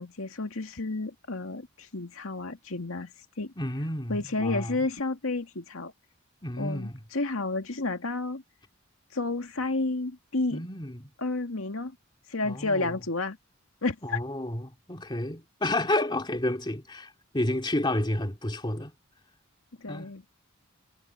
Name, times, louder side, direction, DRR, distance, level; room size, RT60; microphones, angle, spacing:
voice 1, 0.0-3.1 3.4-3.5 4.1-5.9 6.6-8.4 9.1-10.6 11.2-12.0 12.3-13.4 13.8-14.2 19.8-20.2, left 3 dB, 80° left, 2.1 m, -31 dB
voice 2, 3.6-4.9 6.4-7.0 10.5-11.1 12.4-13.0 14.0-18.9 19.9-20.1, left 1 dB, 20° left, 2.5 m, -31 dB
head